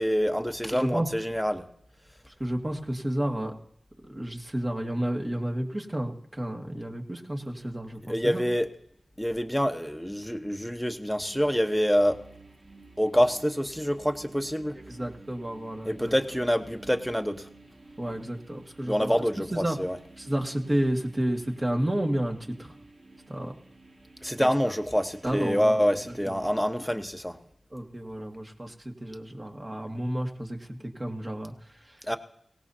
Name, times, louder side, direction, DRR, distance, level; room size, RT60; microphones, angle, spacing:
voice 1, 0.0-1.6 8.1-8.7 9.2-12.2 13.0-14.8 15.8-17.5 18.8-20.0 24.2-27.4 32.0-32.2, equal, ahead, 6 dB, 1.1 m, -26 dB
voice 2, 0.7-1.1 2.4-3.5 4.0-8.4 14.7-16.1 18.0-19.1 19.5-19.8 20.2-22.7 23.3-23.5 24.4-24.5 25.2-25.8 26.3-26.4 27.7-32.0, right 1 dB, 30° right, 1 dB, 1.9 m, -31 dB
sound 1, 11.2-26.5, right 3 dB, 70° right, 2.0 m, -52 dB
22.5 x 17.5 x 2.8 m, 0.71 s
cardioid pair, 50°, 0 cm